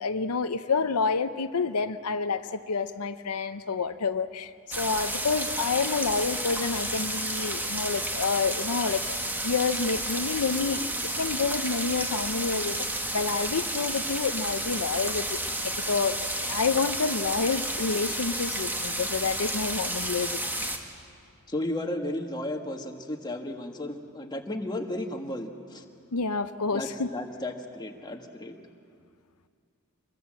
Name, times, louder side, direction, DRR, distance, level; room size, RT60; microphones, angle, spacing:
voice 1, 0.0-4.5 4.8-9.1 9.4-20.7 26.1-27.1, left 4 dB, 85° left, 10 dB, 0.7 m, -29 dB
sound 1, 4.7-20.8, right 1 dB, 10° right, 1.9 m, -31 dB
voice 2, 21.5-25.8 26.7-28.6, left 1 dB, 20° left, 3 dB, 1.7 m, -34 dB
26.0 x 21.5 x 7.7 m, 2.3 s
head